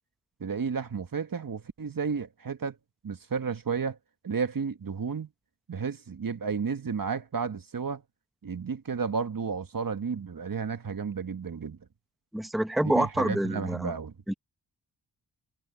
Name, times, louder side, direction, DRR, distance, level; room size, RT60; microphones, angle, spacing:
voice 1, 0.4-2.8 3.0-4.0 4.2-5.3 5.7-8.0 8.4-11.8 12.8-14.1, right 5 dB, 50° right, 1.9 m, -32 dB
voice 2, 12.3-13.9 14.3-14.4, right 1 dB, ahead, 1.0 m, -27 dB
cardioid pair, 65°, 44 cm